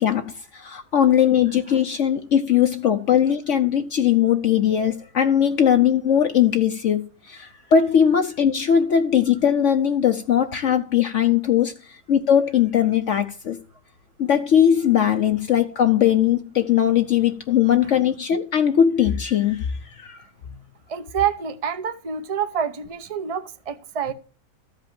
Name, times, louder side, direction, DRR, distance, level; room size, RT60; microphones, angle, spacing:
voice 1, 0.0-13.6 14.2-20.2, left 9 dB, 60° left, 0.9 m, -20 dB
voice 2, 20.9-24.1, right 8 dB, 30° right, 0.7 m, -27 dB
14.0 x 5.2 x 7.4 m
omnidirectional pair, 1.6 m